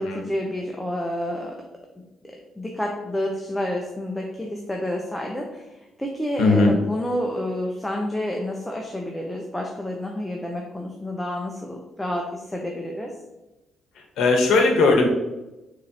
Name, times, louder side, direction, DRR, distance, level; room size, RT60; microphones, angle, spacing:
voice 1, 0.0-1.6 2.0-13.2, left 1 dB, 10° left, 0 dB, 0.5 m, -29 dB
voice 2, 6.4-6.7 14.2-15.1, left 3 dB, 80° left, 2 dB, 0.8 m, -18 dB
4.1 x 3.0 x 2.7 m, 1.0 s
cardioid pair, 90°, 0 cm